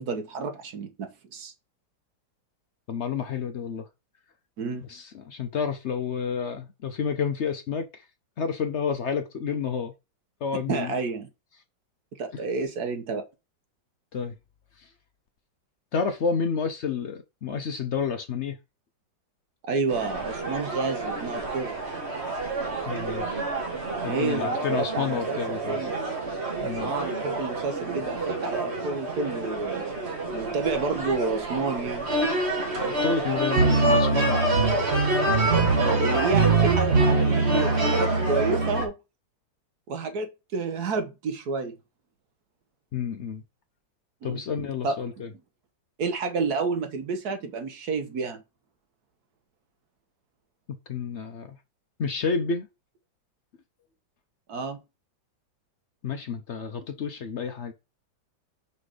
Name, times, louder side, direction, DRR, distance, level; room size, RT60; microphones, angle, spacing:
voice 1, 0.0-1.5 4.6-4.8 10.7-11.3 12.1-13.2 19.6-21.8 24.0-26.0 26.8-29.9 30.3-32.1 35.7-38.9 39.9-41.8 44.2-44.4 44.8-45.0 46.0-48.4 54.5-54.8, right 4 dB, 60° right, 1.3 m, -30 dB
voice 2, 2.9-3.9 4.9-8.0 8.4-9.9 10.4-10.9 14.1-14.3 15.9-18.6 22.9-23.4 24.0-25.8 26.6-26.9 32.8-34.9 42.9-43.4 44.2-45.3 50.9-51.6 52.0-52.7 56.0-57.7, left 6 dB, 70° left, 0.6 m, -30 dB
sound 1, 19.9-38.8, right 3 dB, 35° right, 1.8 m, -25 dB
5.6 x 4.2 x 4.9 m
omnidirectional pair, 2.0 m